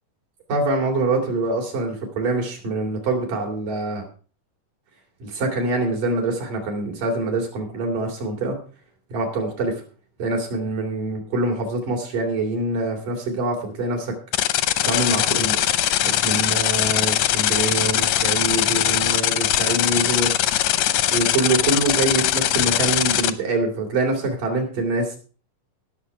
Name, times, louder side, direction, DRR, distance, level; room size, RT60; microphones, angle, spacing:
voice 1, 0.5-4.0 5.2-8.6 9.1-9.7 10.2-14.2 14.9-15.6 16.0-20.3 21.1-25.2, right 2 dB, 70° right, 1 dB, 4.7 m, -25 dB
sound 1, 14.3-23.3, left 12 dB, 75° left, 1.5 m, -21 dB
19.0 x 6.9 x 4.7 m, 0.38 s
omnidirectional pair, 3.8 m